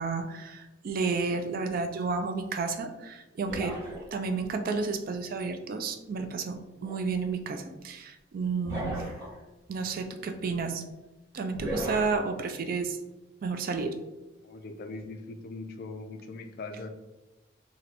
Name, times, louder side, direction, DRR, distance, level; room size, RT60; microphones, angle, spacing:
voice 1, 0.0-3.8 4.1-9.0 9.7-10.8 11.3-13.0 13.4-13.9, right 4 dB, 45° right, 7 dB, 0.3 m, -31 dB
sound 1, 3.5-4.4 6.8-7.0 8.6-9.4 11.5-12.1, equal, 15° right, 1.1 m, -35 dB
voice 2, 14.4-16.9, left 3 dB, 50° left, 6 dB, 0.4 m, -40 dB
2.8 x 2.2 x 4.0 m, 1.0 s
head